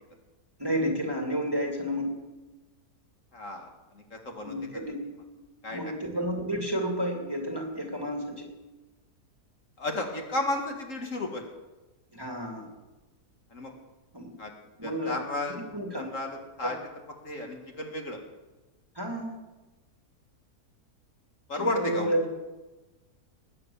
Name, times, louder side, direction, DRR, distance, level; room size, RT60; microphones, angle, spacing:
voice 1, 0.6-2.2 4.4-5.0 5.7-8.5 12.1-12.7 14.1-14.4 14.8-15.2 15.7-16.1 16.6-16.7 18.9-19.4 21.5-22.3, equal, 15° right, 1 dB, 2.4 m, -31 dB
voice 2, 3.3-3.7 3.9-4.5 5.6-5.8 6.2-6.3 9.8-11.4 13.5-13.7 14.4-14.5 14.8-15.6 16.0-16.8 17.2-18.2 21.5-22.1, left 2 dB, 55° left, 2 dB, 2.2 m, -33 dB
19.5 x 9.5 x 7.1 m, 1.1 s
omnidirectional pair, 1.7 m